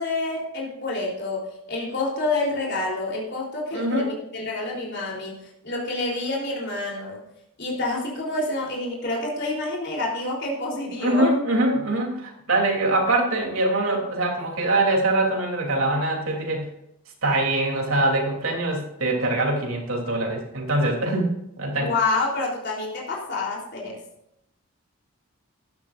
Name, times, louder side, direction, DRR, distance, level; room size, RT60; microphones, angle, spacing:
voice 1, 0.0-7.2 7.6-11.4 21.7-24.0, left 2 dB, 55° left, -3 dB, 3.6 m, -28 dB
voice 2, 3.7-4.1 11.0-16.7 17.2-21.9, right 2 dB, 70° right, 0 dB, 3.2 m, -23 dB
14.0 x 12.0 x 2.6 m, 0.82 s
head